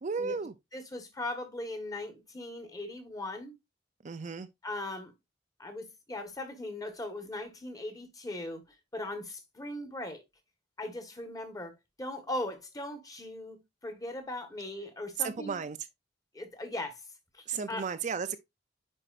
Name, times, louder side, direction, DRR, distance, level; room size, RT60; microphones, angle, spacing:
voice 1, 0.0-0.5 4.0-4.5 15.2-15.8 17.5-18.4, right 6 dB, 40° right, 0.5 m, -34 dB
voice 2, 0.7-3.6 4.6-5.1 5.6-8.6 8.9-10.2 10.8-15.6 16.3-17.0 17.3-17.9, left 1 dB, 20° left, 1.4 m, -39 dB
9.9 x 4.4 x 2.5 m
head